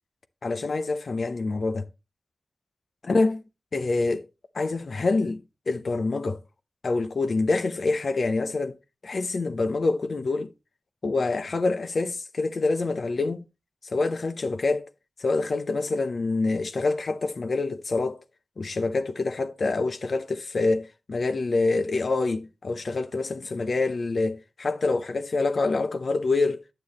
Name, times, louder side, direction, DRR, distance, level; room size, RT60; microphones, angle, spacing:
voice 1, 0.4-1.8 3.0-3.4 3.7-4.3 4.5-6.4 6.8-8.8 9.0-10.5 11.0-13.5 13.9-14.9 15.2-18.2 18.6-26.6, left 3 dB, 75° left, 0.7 m, -26 dB
9.5 x 6.9 x 3.1 m
cardioid pair, 55°, 0 cm